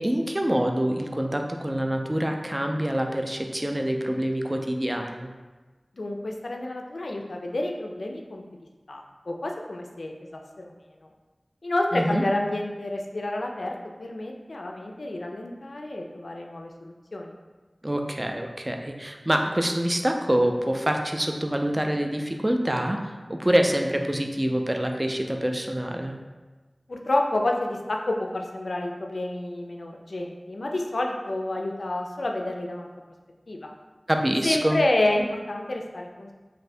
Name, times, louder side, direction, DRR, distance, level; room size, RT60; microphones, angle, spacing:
voice 1, 0.0-5.3 11.9-12.2 17.8-26.1 34.1-34.8, right 1 dB, 25° right, 3 dB, 0.3 m, -26 dB
voice 2, 6.0-8.4 8.9-10.7 11.6-17.4 26.9-32.9 33.5-33.7 34.4-36.3, left 1 dB, 85° left, 1 dB, 0.3 m, -29 dB
2.6 x 2.5 x 3.2 m, 1.3 s
wide cardioid pair, 40°, 0 cm